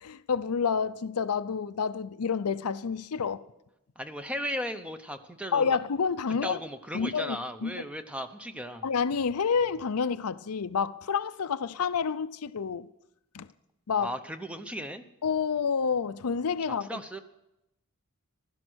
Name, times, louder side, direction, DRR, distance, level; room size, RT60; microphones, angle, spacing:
voice 1, 0.0-3.4 5.5-6.6 6.9-7.7 8.8-12.9 13.3-13.5 13.9-14.1 15.2-17.0, left 6 dB, 90° left, 0.6 m, -29 dB
voice 2, 4.0-5.8 6.4-8.9 14.0-15.0 16.8-17.2, equal, 5° right, 0.8 m, -36 dB
16.0 x 12.5 x 6.3 m
head